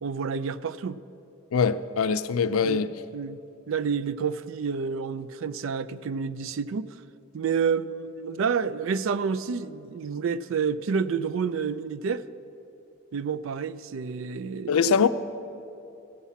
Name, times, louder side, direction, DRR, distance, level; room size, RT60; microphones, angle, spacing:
voice 1, 0.0-1.0 2.6-6.9 7.3-12.2 13.1-14.8, right 6 dB, 65° right, 0.4 m, -29 dB
voice 2, 1.5-2.9 14.7-15.1, left 6 dB, 85° left, 0.4 m, -23 dB
15.0 x 8.3 x 5.7 m
head